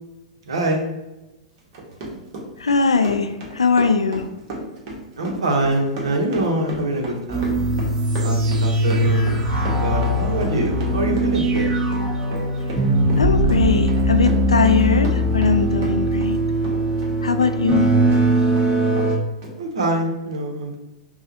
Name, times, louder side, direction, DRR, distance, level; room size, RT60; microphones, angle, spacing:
voice 1, 0.4-0.9 5.2-7.6 8.2-9.4 9.8-11.7 19.6-20.8, right 1 dB, 70° right, 2 dB, 0.9 m, -24 dB
Run, 1.6-16.4 16.6-18.2 18.6-18.7 19.0-19.1 19.4-19.5, right 1 dB, 45° right, 1.2 m, -34 dB
voice 2, 2.6-4.2 13.2-16.4 17.2-17.9, left 4 dB, 80° left, 8 dB, 0.4 m, -20 dB
sound 1, 7.3-19.2, right 1 dB, 20° right, 0.8 m, -20 dB
5.5 x 2.3 x 2.8 m, 1.0 s
figure-of-eight pair, 100°, 3 cm